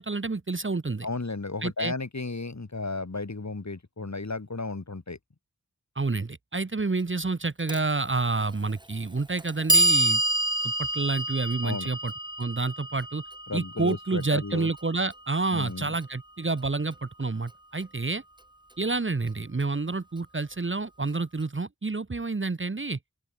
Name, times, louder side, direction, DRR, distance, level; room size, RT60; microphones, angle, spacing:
voice 1, 0.0-1.1 1.6-1.9 6.0-10.2 10.6-12.1 12.4-13.2 13.5-18.2 18.8-23.0, right 3 dB, 35° right, 1.2 m, -29 dB
voice 2, 1.0-5.2 11.6-11.9 13.5-14.7 15.5-15.9, left 3 dB, 50° left, 3.7 m, -34 dB
Clock, 7.7-7.8 8.8-8.9 9.4-15.4, right 1 dB, 15° right, 1.7 m, -28 dB
open air
wide cardioid pair, 45°, 35 cm